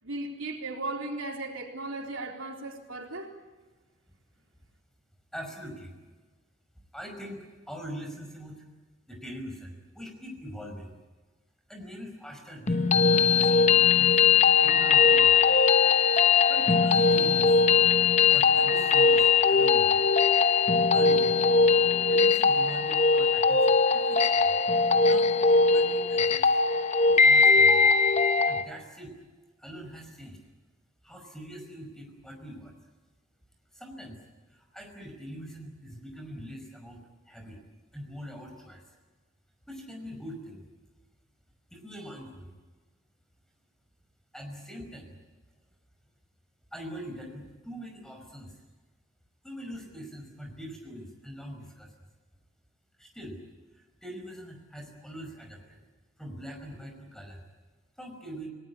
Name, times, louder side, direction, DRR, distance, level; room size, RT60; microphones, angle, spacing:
voice 1, 0.0-3.4, right 2 dB, 85° right, 1 dB, 3.9 m, -36 dB
voice 2, 5.3-6.1 6.9-8.6 9.1-10.9 11.7-14.2 14.6-15.4 16.5-17.6 18.3-20.0 20.9-21.4 22.1-24.5 24.9-26.5 27.1-27.9 28.5-29.1 29.6-30.4 31.0-32.7 33.7-34.2 34.5-37.6 37.9-39.0 39.7-40.6 41.7-42.5 44.3-45.2 46.7-48.6 49.4-51.9 53.0-53.4 53.7-55.8 56.2-57.4 58.0-58.5, equal, 5° left, 3 dB, 5.4 m, -43 dB
sound 1, 12.7-28.6, left 5 dB, 35° left, 0.9 m, -21 dB
29.5 x 19.5 x 8.6 m, 1.3 s
head